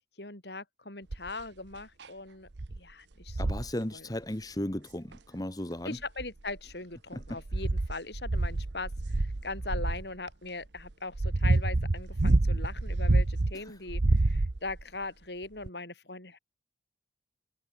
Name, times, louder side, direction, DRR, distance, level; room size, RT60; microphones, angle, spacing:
voice 1, 0.2-2.5 2.8-3.4 3.9-4.1 5.9-16.4, left 3 dB, 65° left, 5.9 m, -40 dB
sound 1, 1.1-1.4 2.0-2.1 2.6-2.8 3.3-3.7 5.1-5.2 6.0-6.7 7.2-10.1 10.8-13.5 13.9-14.8 15.7-15.8, right 2 dB, 70° right, 0.9 m, -27 dB
voice 2, 3.4-6.0 7.1-7.4 13.5-13.7, left 1 dB, 20° left, 1.5 m, -36 dB
head